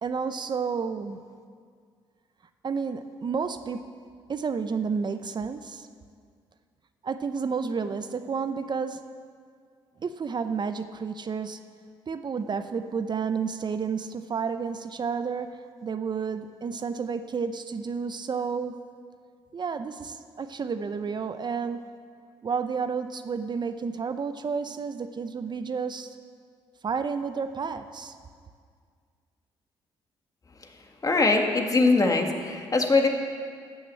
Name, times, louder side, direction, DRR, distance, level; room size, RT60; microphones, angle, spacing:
voice 1, 0.0-1.2 2.6-3.8 4.3-5.9 7.0-9.0 10.0-11.6 12.1-18.7 19.5-21.8 22.4-26.2 26.8-28.1, right 5 dB, 40° right, 9 dB, 0.7 m, -31 dB
voice 2, 31.0-33.1, left 3 dB, 30° left, 4 dB, 1.7 m, -22 dB
13.5 x 6.5 x 7.7 m, 2.1 s
supercardioid pair, 60°, 11 cm